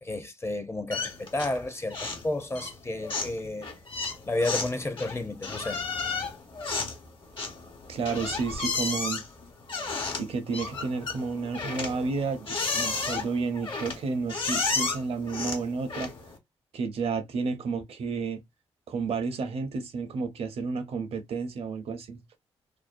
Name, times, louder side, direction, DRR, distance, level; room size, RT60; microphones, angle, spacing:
voice 1, 0.0-3.7 4.3-5.8, left 2 dB, 25° left, 0.5 m, -31 dB
sound 1, 0.9-1.6 1.9-2.3 2.5-16.4, left 4 dB, 50° left, 1.0 m, -33 dB
voice 2, 7.9-9.2 10.2-16.1 16.7-18.4 18.9-22.2, right 4 dB, 65° right, 0.6 m, -31 dB
2.6 x 2.0 x 2.5 m
supercardioid pair, 60°, 11 cm